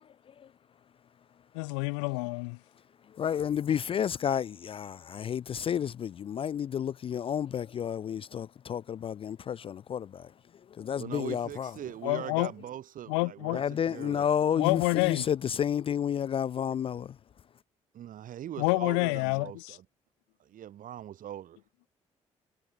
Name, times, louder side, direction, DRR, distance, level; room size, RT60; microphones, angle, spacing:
voice 1, 1.5-2.6 12.0-12.5 13.1-13.6 14.6-15.2 18.6-19.8, left 37 dB, 70° left, 0.7 m, -28 dB
voice 2, 3.2-11.7 13.5-17.2, left 8 dB, 35° left, 0.4 m, -31 dB
voice 3, 11.0-14.3 17.9-19.8 20.4-21.6, right 11 dB, 55° right, 3.3 m, -41 dB
figure-of-eight pair, 40°, 16 cm